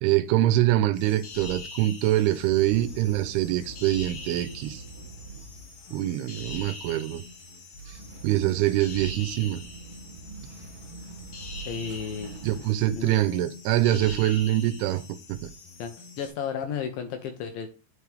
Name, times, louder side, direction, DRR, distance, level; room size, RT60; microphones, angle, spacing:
voice 1, 0.0-4.8 5.9-7.2 8.2-9.6 12.4-15.0 15.3-15.5, right 14 dB, 85° right, 13 dB, 2.5 m, -24 dB
sound 1, 0.9-16.3, left 1 dB, 55° left, 2.0 m, -43 dB
sound 2, 2.3-12.7, right 3 dB, 35° right, 2.5 m, -45 dB
voice 2, 11.7-12.3 12.9-13.5 15.8-17.7, left 7 dB, 75° left, 7 dB, 2.2 m, -33 dB
9.2 x 4.9 x 3.4 m, 0.33 s
omnidirectional pair, 4.7 m